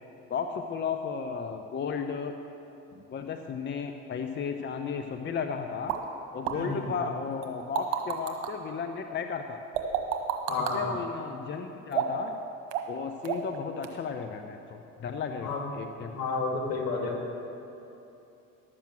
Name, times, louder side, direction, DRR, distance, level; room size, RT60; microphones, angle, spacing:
voice 1, 0.3-2.3 3.1-5.9 6.3-9.6 10.7-12.3 12.9-16.1, left 6 dB, 30° left, 7 dB, 0.7 m, -34 dB
sound 1, 5.9-6.0 6.5-6.6 7.4-8.5 9.7-10.8 11.9-12.3 12.7-13.0 13.2-13.6 13.8-13.9, right 11 dB, 65° right, 1.4 m, -29 dB
voice 2, 6.5-6.9 10.5-10.9 15.4-15.6 16.1-17.2, left 3 dB, 60° left, 1 dB, 2.5 m, -31 dB
12.0 x 7.4 x 7.4 m, 2.9 s
hypercardioid pair, 70°, 40 cm